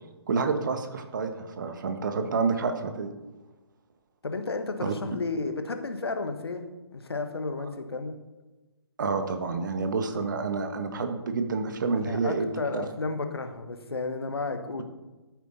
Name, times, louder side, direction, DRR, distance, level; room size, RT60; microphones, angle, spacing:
voice 1, 0.3-3.1 4.8-4.9 9.0-12.5 12.7-12.8, right 4 dB, 45° right, 7 dB, 1.4 m, -28 dB
voice 2, 4.2-6.6 6.9-8.1 11.9-14.8, left 3 dB, 65° left, 7 dB, 1.5 m, -32 dB
13.5 x 9.0 x 4.1 m, 1.1 s
figure-of-eight pair, 140°, 14 cm